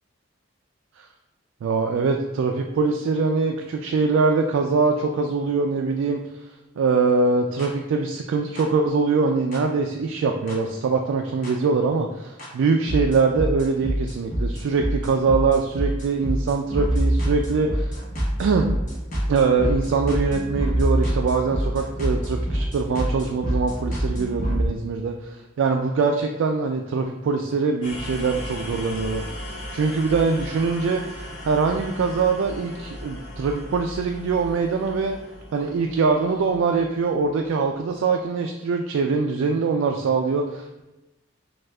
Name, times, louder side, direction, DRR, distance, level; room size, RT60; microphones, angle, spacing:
voice 1, 1.6-6.2 6.8-18.0 18.4-18.7 19.3-29.2 29.7-31.0 31.5-35.2 35.5-40.8, right 4 dB, 75° right, 3 dB, 0.3 m, -23 dB
sound 1, 7.6-7.7 8.6-8.7 9.5-9.6 10.5-10.6 11.4-11.5 12.4-12.5 12.9-24.7, right 1 dB, 40° left, 1.0 m, -25 dB
sound 2, 27.8-37.6, left 1 dB, 80° left, 1.1 m, -37 dB
6.1 x 2.4 x 2.2 m, 1.0 s
head